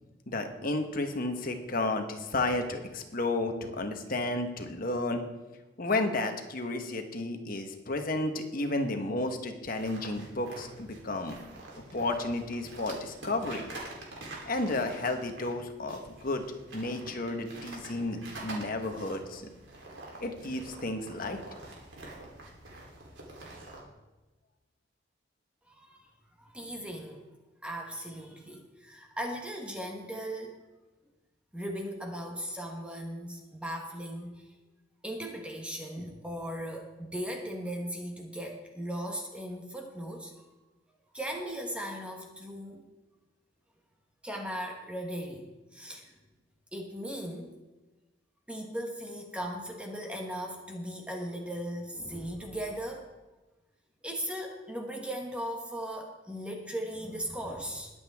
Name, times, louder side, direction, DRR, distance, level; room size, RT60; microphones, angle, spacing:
voice 1, 0.3-5.2 5.8-11.4 11.9-13.6 14.4-16.4 16.7-19.5 20.2-21.4, left 2 dB, 50° left, 5 dB, 1.3 m, -32 dB
sound 1, 9.8-23.8, right 2 dB, 80° right, 3.6 m, -46 dB
voice 2, 25.7-26.1 26.4-27.2 27.6-30.6 31.5-34.5 35.0-40.5 41.1-42.9 44.2-46.1 46.7-47.5 48.5-53.1 54.0-57.9, equal, 5° right, 1 dB, 1.3 m, -38 dB
21.0 x 8.1 x 3.6 m, 1.1 s
head